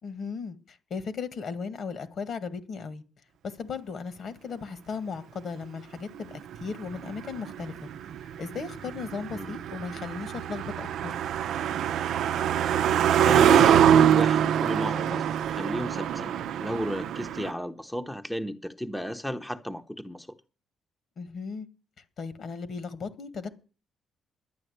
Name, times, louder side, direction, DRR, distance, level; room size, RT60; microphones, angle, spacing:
voice 1, 0.0-3.0 3.4-7.9 8.4-11.1 21.2-21.7 22.2-23.5, left 5 dB, 55° left, 1.7 m, -36 dB
Car passing by, 6.3-17.5, right 9 dB, 75° right, 0.7 m, -24 dB
voice 2, 13.0-16.3 16.6-20.3, equal, 5° left, 0.9 m, -33 dB
11.5 x 9.1 x 8.0 m
cardioid pair, 90°, 0 cm